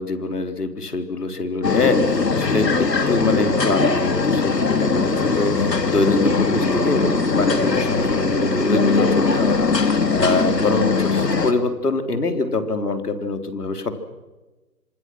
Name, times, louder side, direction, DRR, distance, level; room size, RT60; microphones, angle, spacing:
voice 1, 0.0-13.9, left 3 dB, 70° left, 7 dB, 3.9 m, -24 dB
sound 1, 1.6-11.5, left 4 dB, 85° left, 3.3 m, -20 dB
27.0 x 26.5 x 6.3 m, 1.1 s
hypercardioid pair, 170°, 48 cm